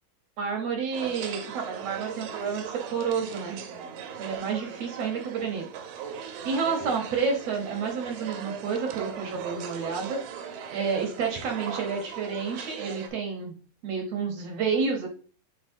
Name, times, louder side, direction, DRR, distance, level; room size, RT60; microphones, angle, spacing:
voice 1, 0.4-3.6 4.2-5.6 6.1-10.2 10.7-13.5 13.8-15.1, right 5 dB, 65° right, 2 dB, 1.6 m, -30 dB
sound 1, 0.9-13.1, right 7 dB, 85° right, 2.6 m, -39 dB
10.0 x 4.2 x 2.7 m, 0.40 s
omnidirectional pair, 4.0 m